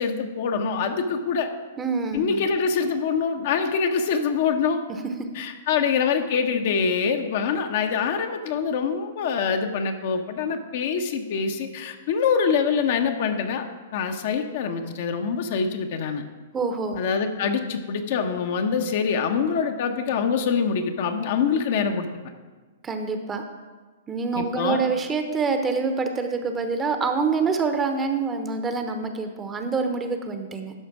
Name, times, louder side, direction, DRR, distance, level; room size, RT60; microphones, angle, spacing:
voice 1, 0.0-1.5 2.1-4.8 5.3-13.6 13.9-16.2 16.9-22.1 24.3-24.8, left 6 dB, 55° left, 5 dB, 0.9 m, -25 dB
voice 2, 1.8-2.5 16.5-17.0 22.8-23.4 24.1-30.7, right 4 dB, 20° right, 6 dB, 0.9 m, -26 dB
12.0 x 5.1 x 4.8 m, 1.3 s
hypercardioid pair, 115°, 0 cm